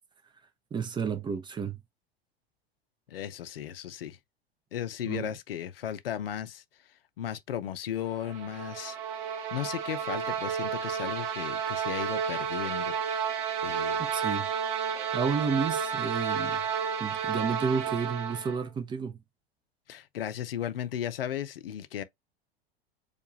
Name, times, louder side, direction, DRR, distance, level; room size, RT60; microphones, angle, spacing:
voice 1, 0.7-1.8 5.0-5.3 14.0-14.5 14.9-16.6 17.0-19.2, right 5 dB, 15° right, 0.5 m, -31 dB
voice 2, 3.1-4.2 4.7-6.6 7.2-9.0 9.5-13.0 13.6-14.0 19.9-22.0, left 10 dB, 65° left, 0.5 m, -35 dB
sound 1, 8.1-18.7, right 7 dB, 55° right, 0.8 m, -31 dB
4.5 x 2.3 x 3.0 m
figure-of-eight pair, 85°, 31 cm